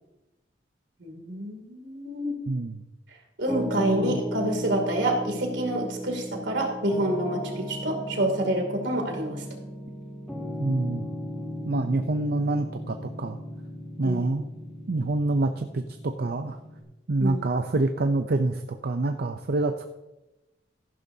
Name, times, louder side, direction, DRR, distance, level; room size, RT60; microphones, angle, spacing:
voice 1, 1.0-2.4 3.4-9.4 11.4-11.7 14.0-14.2 17.2-17.4, right 1 dB, 75° right, 2 dB, 2.7 m, -28 dB
voice 2, 2.5-2.8 3.8-4.2 10.6-11.0 11.7-13.4 14.0-14.5 14.9-16.6 17.1-19.9, right 2 dB, 60° right, 6 dB, 0.6 m, -26 dB
Piano, 3.5-16.8, equal, 5° left, 2.1 m, -36 dB
14.5 x 11.5 x 2.8 m, 1.0 s
head